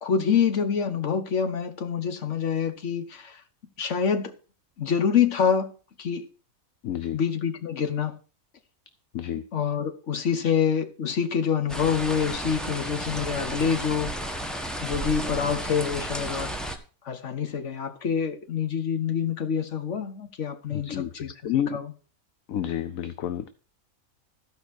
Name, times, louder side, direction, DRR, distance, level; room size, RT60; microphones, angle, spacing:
voice 1, 0.0-3.4 3.8-4.3 4.8-5.7 6.0-6.3 7.1-8.2 9.5-14.1 14.8-16.6 17.0-21.9, left 7 dB, 60° left, 1.5 m, -26 dB
voice 2, 6.8-7.2 9.1-9.4 20.8-21.1 21.4-21.8 22.5-23.5, left 10 dB, 75° left, 1.1 m, -29 dB
sound 1, 11.7-16.8, right 1 dB, ahead, 1.1 m, -33 dB
14.5 x 5.3 x 6.4 m
omnidirectional pair, 1.5 m